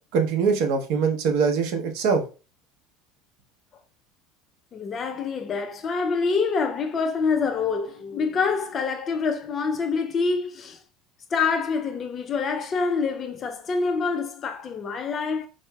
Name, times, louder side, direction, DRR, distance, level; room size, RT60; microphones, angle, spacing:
voice 1, 0.1-2.2, right 5 dB, 65° right, 0.7 m, -22 dB
voice 2, 4.7-10.8 11.3-15.5, left 5 dB, 25° left, 0.4 m, -26 dB
4.4 x 2.8 x 2.2 m
cardioid pair, 155°, 0 cm